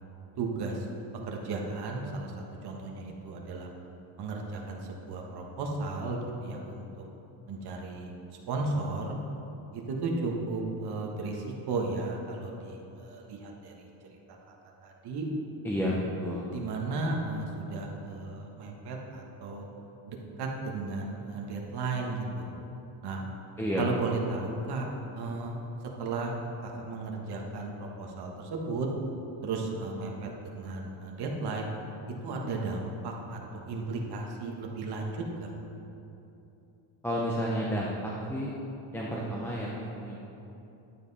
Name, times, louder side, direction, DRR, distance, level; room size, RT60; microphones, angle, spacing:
voice 1, 0.4-0.9 1.3-2.3 2.6-3.7 4.2-7.0 7.5-8.1 8.5-9.2 9.7-13.7 14.1-14.2 14.8-15.3 16.5-19.7 20.1-22.5 23.0-23.2 23.8-24.9 25.1-25.6 26.0-26.3 26.6-28.9 29.4-30.3 30.5-31.7 32.2-33.4 33.7-35.5, right 3 dB, 50° right, 0 dB, 1.4 m, -34 dB
voice 2, 15.6-16.5 23.6-24.2 37.0-38.5 38.9-40.2, equal, 5° left, -5 dB, 0.6 m, -31 dB
12.0 x 7.5 x 4.1 m, 2.9 s
cardioid pair, 165°, 49 cm